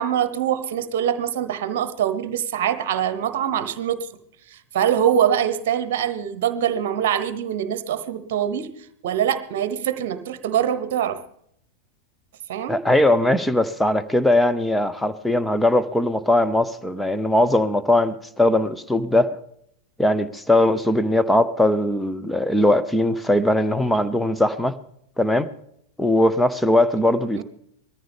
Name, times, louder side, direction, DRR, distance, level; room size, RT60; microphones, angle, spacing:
voice 1, 0.0-4.1 4.5-8.7 9.0-11.2 12.5-12.8 27.4-27.5, right 9 dB, 55° right, 12 dB, 1.0 m, -24 dB
voice 2, 12.7-19.4 20.0-24.8 25.2-25.5 26.0-27.4, left 1 dB, 5° left, 11 dB, 0.8 m, -20 dB
20.5 x 14.0 x 3.5 m, 0.71 s
figure-of-eight pair, 90°, 0 cm